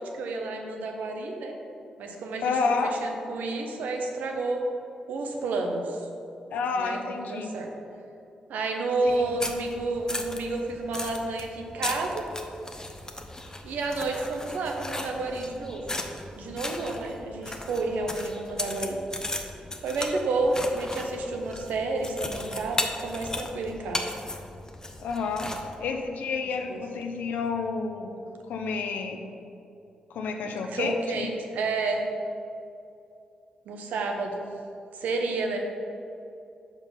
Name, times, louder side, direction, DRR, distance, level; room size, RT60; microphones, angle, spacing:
voice 1, 0.0-1.5 2.0-4.6 5.1-6.1 6.8-7.7 8.5-12.3 13.6-15.8 16.4-19.0 19.8-24.0 26.4-26.8 30.4-32.0 33.7-34.4 34.9-35.6, right 3 dB, 85° right, 2 dB, 0.8 m, -30 dB
voice 2, 2.4-2.9 6.5-7.5 25.0-25.5 25.8-28.1 28.5-29.2 30.1-31.3, left 4 dB, 85° left, 4 dB, 0.6 m, -29 dB
sound 1, 9.1-25.7, left 2 dB, 25° left, 0.7 m, -37 dB
5.3 x 4.9 x 5.5 m, 2.7 s
supercardioid pair, 55°, 3 cm